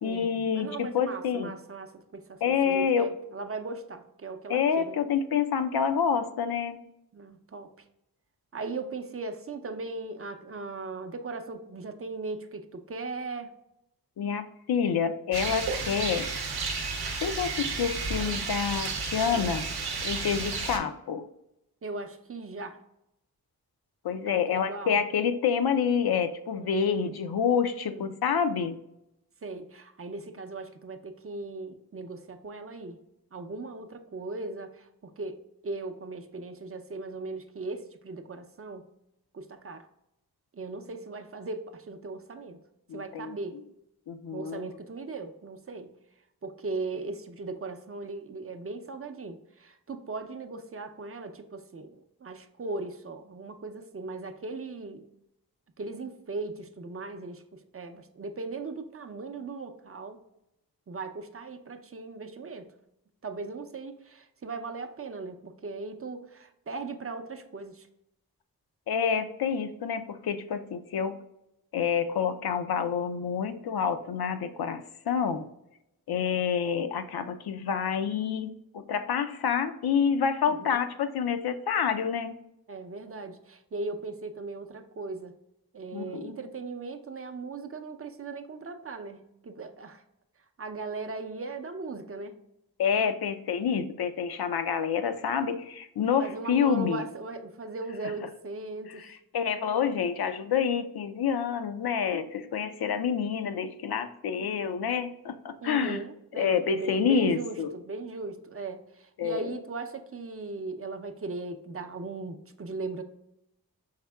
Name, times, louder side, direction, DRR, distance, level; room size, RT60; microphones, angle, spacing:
voice 1, 0.0-1.6 2.4-3.1 4.5-6.8 14.2-16.3 17.2-19.6 20.0-21.3 24.0-28.8 42.9-43.3 44.1-44.7 68.9-71.2 71.7-75.4 76.1-82.3 85.9-86.3 92.8-97.0 99.3-106.0 106.4-107.7 109.2-109.5, left 7 dB, 75° left, 9 dB, 0.5 m, -28 dB
voice 2, 0.5-5.0 7.1-7.7 8.5-13.5 21.8-22.8 24.2-25.0 26.5-27.4 27.9-28.1 29.4-33.0 33.3-35.4 35.6-38.9 39.3-39.9 40.5-42.6 42.9-43.6 44.3-45.9 46.4-55.1 55.8-60.2 60.9-62.7 63.2-67.9 80.4-80.8 82.7-85.4 85.7-90.0 90.6-92.4 96.2-99.1 105.6-113.0, right 3 dB, 35° right, 7 dB, 0.5 m, -38 dB
Rain, 15.3-20.8, right 4 dB, 85° right, 0.7 m, -32 dB
4.9 x 3.5 x 2.2 m, 0.84 s
cardioid pair, 45°, 38 cm